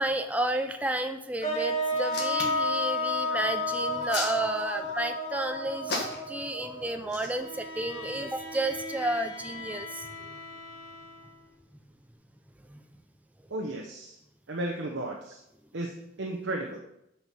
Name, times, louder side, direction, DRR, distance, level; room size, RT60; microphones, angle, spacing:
voice 1, 0.0-10.4 12.6-12.8, right 1 dB, 5° right, 6 dB, 0.5 m, -32 dB
sound 1, 1.4-7.5, left 1 dB, 35° left, 1.9 m, -31 dB
Hands, 2.0-2.7 3.7-4.9 5.9-6.4 7.0-7.3, left 3 dB, 55° left, 1.9 m, -34 dB
Bowed string instrument, 7.2-11.5, left 2 dB, 80° left, 2.1 m, -42 dB
voice 2, 13.5-14.2 14.5-15.4 15.7-16.8, right 1 dB, 70° right, 0 dB, 0.9 m, -34 dB
7.7 x 5.6 x 5.9 m, 0.83 s
head